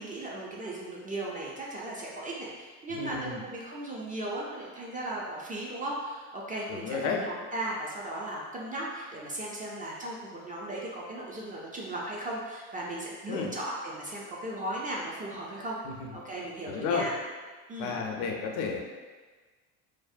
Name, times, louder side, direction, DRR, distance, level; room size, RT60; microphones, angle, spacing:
voice 1, 0.0-15.8 16.1-17.2 17.7-18.0, right 1 dB, 20° right, -4 dB, 0.3 m, -37 dB
voice 2, 2.9-3.4 6.7-7.2 13.3-13.5 16.7-17.0 17.8-18.8, left 5 dB, 75° left, 1 dB, 0.5 m, -31 dB
2.6 x 2.0 x 2.4 m, 1.4 s
hypercardioid pair, 75°, 43 cm